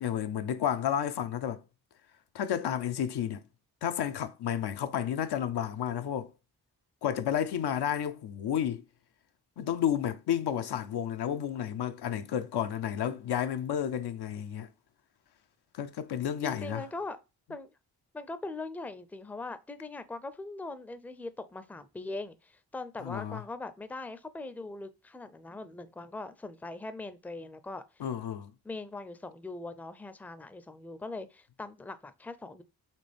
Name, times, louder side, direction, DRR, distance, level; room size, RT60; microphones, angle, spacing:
voice 1, 0.0-1.6 2.3-3.4 3.8-6.3 7.0-8.8 9.6-14.7 15.7-16.8 23.0-23.4 28.0-28.5, left 9 dB, 85° left, 0.6 m, -31 dB
voice 2, 16.4-17.2 17.5-17.7 18.1-27.8 28.6-32.6, left 2 dB, 5° left, 0.4 m, -41 dB
4.3 x 3.0 x 3.3 m
cardioid pair, 65°, 39 cm